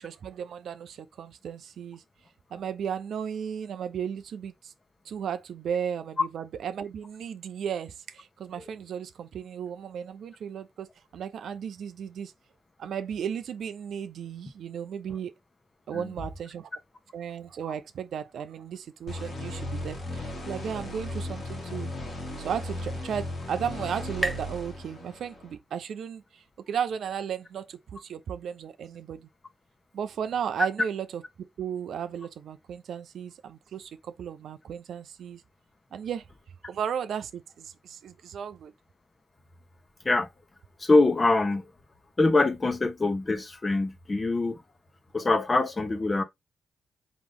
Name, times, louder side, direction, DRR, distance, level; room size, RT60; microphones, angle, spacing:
voice 1, 0.0-2.0 2.5-4.7 5.0-12.3 12.8-15.3 15.9-16.7 17.1-21.9 22.4-29.3 29.9-31.2 31.6-35.4 35.9-36.2 36.7-38.7, right 8 dB, 75° right, 0.4 m, -35 dB
sound 1, 19.1-25.5, left 1 dB, 70° left, 1.7 m, -36 dB
sound 2, 22.8-26.1, equal, 5° left, 0.8 m, -39 dB
voice 2, 40.8-41.6 42.2-44.6 45.1-46.2, left 2 dB, 35° left, 1.1 m, -24 dB
3.9 x 3.0 x 3.6 m
supercardioid pair, 50°, 0 cm